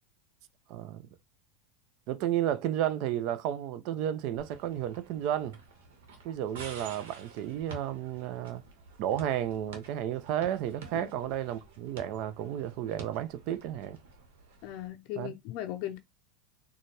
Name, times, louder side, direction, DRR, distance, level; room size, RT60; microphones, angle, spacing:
voice 1, 0.7-1.1 2.1-5.6 6.2-8.6 9.0-14.0 15.1-15.3, right 11 dB, 60° right, 0.5 m, -32 dB
sound 1, 4.4-14.9, right 4 dB, 80° right, 1.2 m, -50 dB
voice 2, 14.6-16.0, left 13 dB, 60° left, 0.5 m, -38 dB
4.1 x 2.3 x 3.2 m
supercardioid pair, 105°, 0 cm